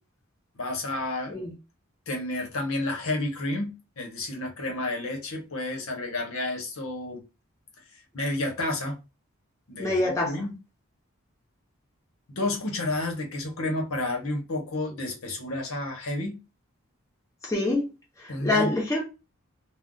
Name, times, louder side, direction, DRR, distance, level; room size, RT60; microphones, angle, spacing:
voice 1, 0.5-1.4 2.1-3.7 4.0-7.2 8.1-9.0 9.7-10.6 12.3-16.3 18.3-18.7, left 2 dB, 70° left, 0.9 m, -30 dB
voice 2, 9.8-10.3 17.4-17.9 18.4-19.0, left 2 dB, 15° left, 0.7 m, -25 dB
2.4 x 2.2 x 3.8 m
head